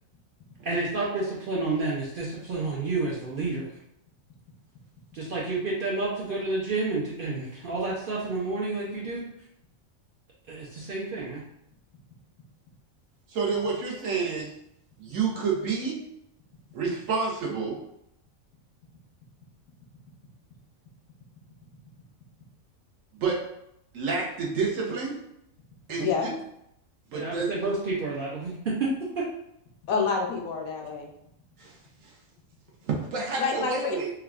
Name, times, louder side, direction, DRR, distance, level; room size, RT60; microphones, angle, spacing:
voice 1, 0.6-3.7 5.1-9.2 10.5-11.4 26.0-26.1 27.1-28.9 29.1-29.2, right 3 dB, 60° right, -5 dB, 0.5 m, -30 dB
voice 2, 13.3-14.5 15.0-16.0 16.7-17.8 23.1-23.4 23.9-25.2 25.9-26.3 27.1-27.5 31.6-31.7 32.8-34.1, right 5 dB, 75° right, -2 dB, 1.1 m, -29 dB
voice 3, 29.8-31.1 33.4-34.0, left 5 dB, 85° left, 1 dB, 1.1 m, -27 dB
3.4 x 2.3 x 2.3 m, 0.77 s
omnidirectional pair, 1.4 m